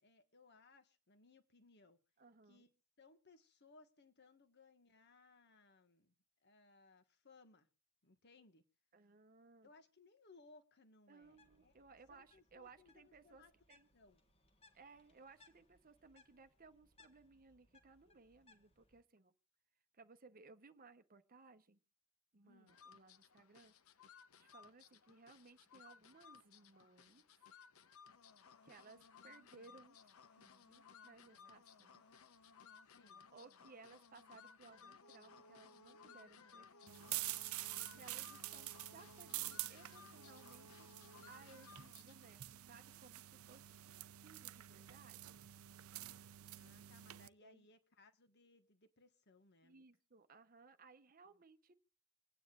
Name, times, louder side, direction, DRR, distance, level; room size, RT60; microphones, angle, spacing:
voice 1, 0.0-2.0 2.5-2.7 3.0-6.1 6.4-7.7 8.0-8.6 9.6-11.7 12.1-13.5 13.9-14.2 22.4-22.8 32.9-33.3 46.6-49.8, left 3 dB, 50° left, 8 dB, 1.4 m, -66 dB
voice 2, 2.2-2.7 8.9-9.7 11.1-13.4 13.7-13.9 14.7-19.3 19.9-21.8 22.3-23.7 24.4-27.2 28.4-32.0 33.3-37.3 37.7-40.9 41.3-45.5 47.4-47.7 49.6-51.7, right 4 dB, 40° right, 10 dB, 0.8 m, -62 dB
Bird, 11.2-19.0, left 3 dB, 25° left, 1.4 m, -71 dB
sound 1, 22.7-42.4, left 5 dB, 75° left, 0.8 m, -61 dB
sound 2, 36.9-47.3, right 16 dB, 75° right, 0.5 m, -48 dB
26.5 x 9.4 x 2.4 m, 0.33 s
head